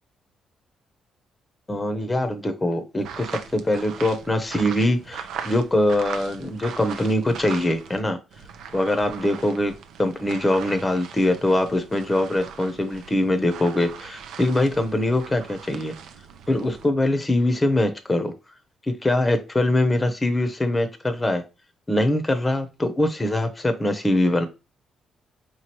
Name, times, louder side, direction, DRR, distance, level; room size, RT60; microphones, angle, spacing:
voice 1, 1.7-8.2 8.7-9.7 10.0-15.9 16.5-18.3 18.9-21.4 21.9-24.5, left 1 dB, 20° left, 0.7 m, -23 dB
sound 1, 3.0-8.0 8.3-16.9, right 7 dB, 80° right, 0.6 m, -39 dB
4.6 x 3.1 x 2.9 m
cardioid pair, 90°, 0 cm